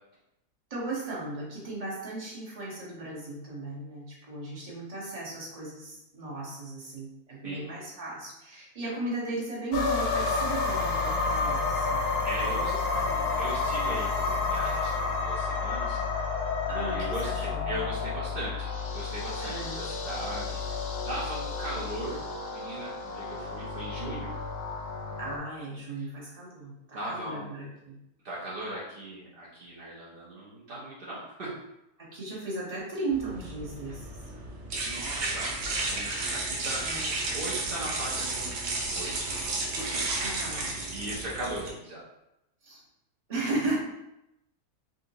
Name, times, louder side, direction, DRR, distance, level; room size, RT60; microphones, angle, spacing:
voice 1, 0.7-12.0 12.5-13.4 16.7-17.6 19.4-19.8 25.2-28.0 32.0-34.1 36.8-37.1 40.2-40.7 42.6-42.8 43.3-43.8, right 2 dB, 30° right, -6 dB, 0.8 m, -36 dB
sound 1, 9.7-25.4, left 4 dB, 70° left, 0.7 m, -30 dB
voice 2, 12.2-12.7 13.4-16.3 16.8-22.2 22.5-24.3 26.0-26.1 26.9-27.5 28.2-31.5 34.8-36.8 37.3-39.1 39.8-40.0 40.7-42.0, right 1 dB, 65° right, -7 dB, 0.5 m, -38 dB
sound 2, 33.1-41.7, right 2 dB, 85° right, 1.4 m, -33 dB
3.9 x 2.6 x 2.6 m, 0.88 s
omnidirectional pair, 1.8 m